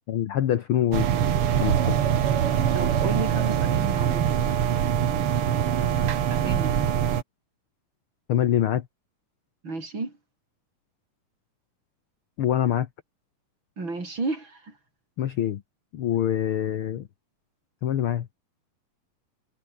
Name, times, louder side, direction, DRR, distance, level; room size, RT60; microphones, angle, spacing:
voice 1, 0.1-1.1 1.6-2.0 8.3-8.8 12.4-12.9 15.2-15.6 15.9-17.1 17.8-18.3, left 10 dB, 65° left, 1.3 m, -25 dB
sound 1, 0.9-7.2, right 9 dB, 50° right, 2.0 m, -23 dB
voice 2, 2.7-4.5 6.3-6.9 9.6-10.1 13.8-14.7, right 3 dB, 35° right, 5.9 m, -32 dB
omnidirectional pair, 3.9 m